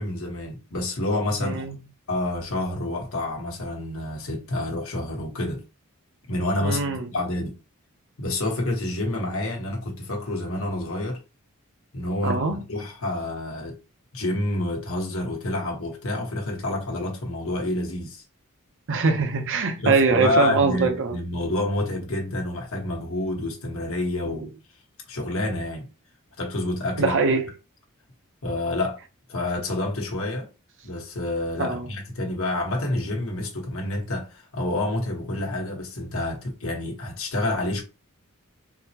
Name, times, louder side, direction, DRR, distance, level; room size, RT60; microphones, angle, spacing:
voice 1, 0.0-1.7 2.1-5.6 6.3-7.5 8.2-11.2 11.9-13.8 14.1-18.2 19.8-24.5 25.1-25.9 26.4-27.2 28.4-29.0 29.3-30.5 30.8-37.8, left 1 dB, 65° left, 1.1 m, -28 dB
voice 2, 1.4-1.7 6.6-7.1 12.2-12.6 18.9-21.2 24.3-24.4 27.0-27.5 31.6-31.8, right 4 dB, 60° right, 0.6 m, -22 dB
3.9 x 2.1 x 2.8 m
head